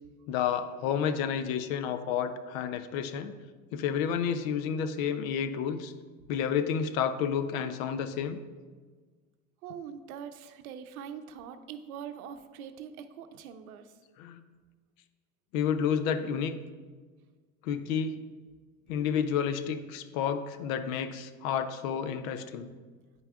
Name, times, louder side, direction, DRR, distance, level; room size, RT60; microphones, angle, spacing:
voice 1, 0.3-3.3 3.7-5.9 6.3-8.4 14.2-14.4 15.5-16.6 17.6-18.2 18.9-22.7, left 7 dB, 70° left, 11 dB, 0.6 m, -30 dB
voice 2, 9.6-13.9, right 8 dB, 85° right, 9 dB, 0.6 m, -43 dB
9.3 x 5.6 x 2.4 m, 1.5 s
hypercardioid pair, 90°, 42 cm